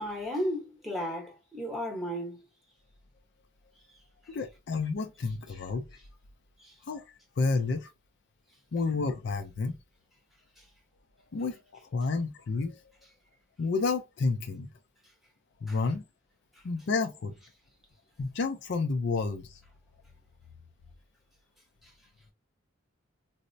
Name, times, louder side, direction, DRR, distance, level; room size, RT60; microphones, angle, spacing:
voice 1, 0.0-2.4 6.6-6.7 15.7-15.8, equal, ahead, 0.9 m, -34 dB
voice 2, 4.3-5.8 6.8-7.1 7.4-7.9 8.7-9.8 11.3-12.8 13.6-14.7 15.6-16.0 16.6-17.3 18.2-19.6, left 4 dB, 55° left, 0.4 m, -30 dB
4.1 x 2.0 x 2.6 m
head